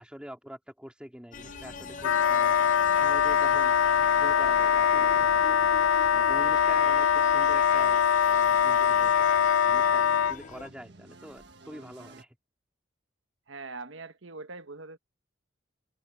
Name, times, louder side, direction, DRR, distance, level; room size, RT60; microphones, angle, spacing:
voice 1, 0.0-3.8 4.2-5.6 6.1-12.4, equal, 5° right, 2.7 m, -45 dB
sound 1, 1.3-10.7, left 3 dB, 40° left, 0.9 m, -43 dB
sound 2, 1.4-12.2, right 2 dB, 60° right, 1.7 m, -52 dB
Wind instrument woodwind instrument, 2.0-10.4, left 8 dB, 85° left, 0.4 m, -23 dB
voice 2, 13.5-15.0, right 3 dB, 75° right, 1.2 m, -42 dB
head